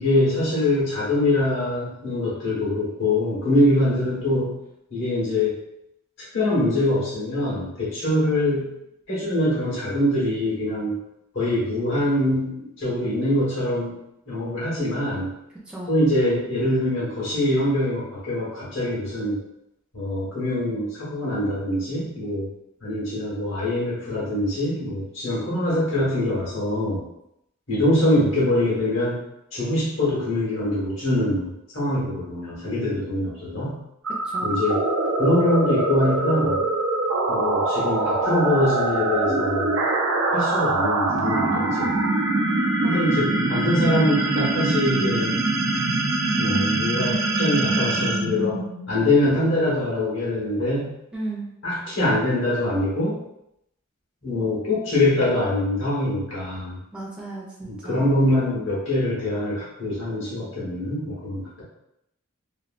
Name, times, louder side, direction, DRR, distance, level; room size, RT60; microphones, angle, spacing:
voice 1, 0.0-4.5 4.9-5.6 6.3-8.7 9.1-11.0 11.3-14.0 14.3-15.3 15.9-19.4 19.9-22.5 22.8-27.0 27.7-29.2 29.5-33.8 34.4-34.8 35.2-36.6 37.3-39.7 40.3-42.0 42.8-45.3 46.4-48.6 48.9-50.9 51.6-53.2 54.2-56.8 57.6-61.6, left 1 dB, 70° left, -7 dB, 1.5 m, -23 dB
sound 1, 34.0-49.2, right 2 dB, 85° right, 0.5 m, -23 dB
voice 2, 51.1-51.5 56.9-58.0, right 2 dB, 5° right, -6 dB, 0.5 m, -34 dB
3.2 x 2.5 x 2.5 m, 0.81 s
head